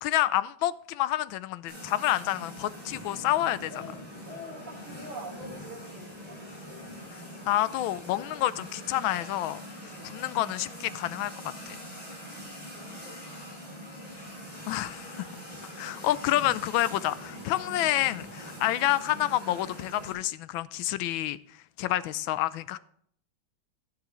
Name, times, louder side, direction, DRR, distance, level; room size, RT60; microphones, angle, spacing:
voice 1, 0.0-3.7 7.1-11.3 11.7-11.8 14.7-15.3 15.8-21.4 21.8-22.8, left 14 dB, 80° left, 1.3 m, -28 dB
sound 1, 1.7-20.1, equal, 20° left, 5.8 m, -43 dB
voice 2, 3.7-4.0 4.3-6.4 9.8-10.2 12.3-12.5 12.7-13.8 15.8-16.1 18.4-18.6 21.9-22.1, equal, 75° right, 4.9 m, -46 dB
12.5 x 10.0 x 3.1 m
omnidirectional pair, 2.2 m